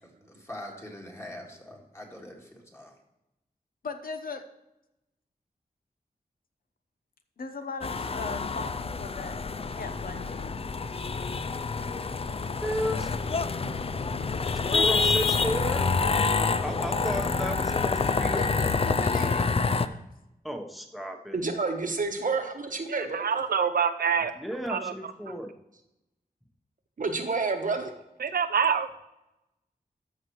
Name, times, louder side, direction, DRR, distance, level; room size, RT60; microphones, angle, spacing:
voice 1, 0.0-2.9, left 1 dB, 15° left, 0 dB, 1.9 m, -44 dB
voice 2, 3.8-4.4 7.4-9.4 9.8-10.5 18.4-20.1, left 4 dB, 65° left, 7 dB, 0.9 m, -38 dB
sound 1, 7.8-19.9, left 4 dB, 40° left, 0.4 m, -27 dB
voice 3, 12.6-13.1 14.5-15.9 16.6-18.5 20.4-21.4 24.4-25.5, equal, ahead, 3 dB, 1.0 m, -33 dB
voice 4, 21.3-23.3 27.0-27.9, right 4 dB, 60° right, 4 dB, 1.2 m, -29 dB
voice 5, 22.9-24.3 24.7-24.9 28.2-28.9, right 6 dB, 80° right, 10 dB, 0.5 m, -26 dB
13.5 x 5.8 x 3.1 m, 0.92 s
wide cardioid pair, 105°, 16 cm